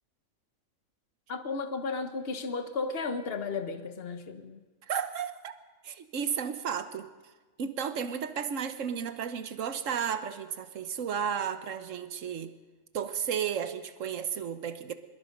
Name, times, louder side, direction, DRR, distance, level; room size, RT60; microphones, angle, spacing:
voice 1, 1.3-4.6, left 4 dB, 50° left, 8 dB, 1.4 m, -34 dB
voice 2, 4.9-5.6 5.8-7.1 7.6-12.5 12.9-14.9, right 7 dB, 80° right, 10 dB, 1.4 m, -33 dB
25.0 x 21.0 x 5.3 m, 1.3 s
omnidirectional pair, 1.3 m